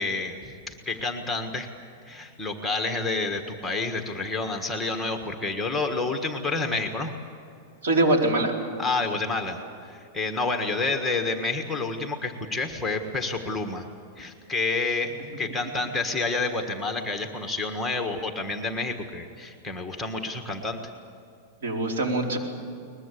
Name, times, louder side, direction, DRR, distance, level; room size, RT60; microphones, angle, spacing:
voice 1, 0.0-1.7 2.1-7.1 8.8-9.6 9.9-13.9 14.2-20.8, left 3 dB, 5° left, 4 dB, 1.5 m, -29 dB
voice 2, 7.8-8.5 21.6-22.4, right 2 dB, 75° right, 1 dB, 4.4 m, -23 dB
22.5 x 21.0 x 8.4 m, 2.5 s
supercardioid pair, 160°, 0 cm